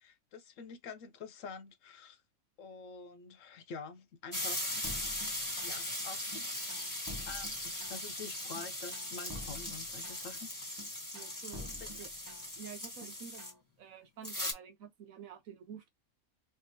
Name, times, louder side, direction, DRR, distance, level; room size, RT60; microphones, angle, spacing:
voice 1, 0.0-2.2 2.6-4.8 5.6-6.5 7.2-10.5 11.6-12.0, left 5 dB, 70° left, 1.0 m, -47 dB
sound 1, 4.3-13.5 14.2-14.5, left 1 dB, 15° left, 1.5 m, -39 dB
sound 2, 4.8-6.0 6.3-8.2 8.5-10.4 10.8-12.7 13.0-13.6, equal, 20° right, 0.7 m, -49 dB
voice 2, 11.1-11.7 12.0-12.1 12.6-13.4 13.8-15.9, right 8 dB, 75° right, 1.1 m, -49 dB
3.3 x 3.3 x 2.8 m
omnidirectional pair, 1.5 m